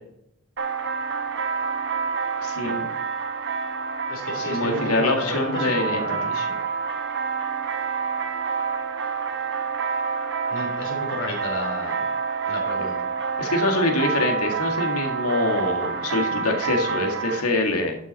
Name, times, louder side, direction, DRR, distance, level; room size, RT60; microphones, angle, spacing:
sound 1, 0.6-17.4, right 5 dB, 55° right, 1.1 m, -28 dB
voice 1, 2.4-2.9 4.5-6.0 6.3-6.4 12.5-12.6 13.4-18.0, left 2 dB, 85° left, 3 dB, 2.0 m, -24 dB
voice 2, 4.1-6.3 10.5-12.1 12.5-13.2, left 1 dB, 60° left, 1 dB, 3.4 m, -32 dB
12.0 x 6.2 x 4.1 m, 0.76 s
head